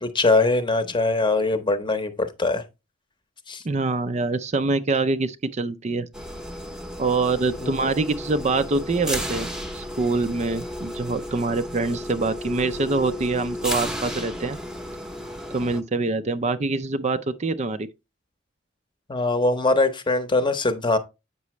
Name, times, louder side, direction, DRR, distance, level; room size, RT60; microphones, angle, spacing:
voice 1, 0.0-2.6 3.5-3.6 7.6-7.7 19.1-21.0, left 2 dB, 25° left, 0.8 m, -22 dB
voice 2, 3.6-6.1 7.0-9.5 9.7-14.6 15.5-17.9, right 3 dB, 35° right, 0.5 m, -25 dB
sound 1, 6.1-15.8, equal, 5° right, 0.8 m, -33 dB
8.2 x 6.0 x 3.1 m
head